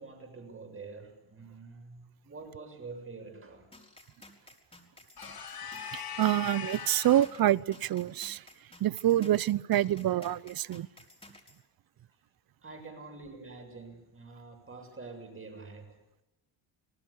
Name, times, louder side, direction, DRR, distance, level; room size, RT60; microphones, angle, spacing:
voice 1, 0.0-3.7 12.6-16.0, right 4 dB, 25° right, 4 dB, 7.1 m, -46 dB
sound 1, 3.7-11.6, left 1 dB, 10° left, 4.6 m, -55 dB
sound 2, 5.2-7.4, left 7 dB, 50° left, 4.3 m, -40 dB
voice 2, 5.9-8.4 8.8-10.9, right 13 dB, 50° right, 21 dB, 0.8 m, -27 dB
27.5 x 19.0 x 8.6 m, 0.95 s
cardioid pair, 100°, 47 cm